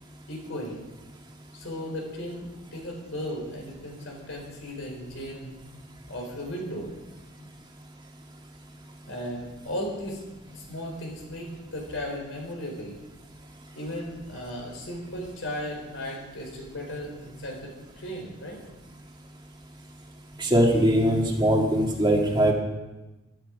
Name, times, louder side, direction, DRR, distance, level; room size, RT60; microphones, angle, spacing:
voice 1, 0.3-0.9 1.5-5.6 6.1-6.9 9.1-10.2 10.5-12.9 13.7-18.6, equal, 70° left, 0 dB, 4.1 m, -36 dB
voice 2, 20.4-22.5, equal, 20° right, 0 dB, 1.8 m, -21 dB
15.5 x 11.5 x 5.1 m, 1.1 s
head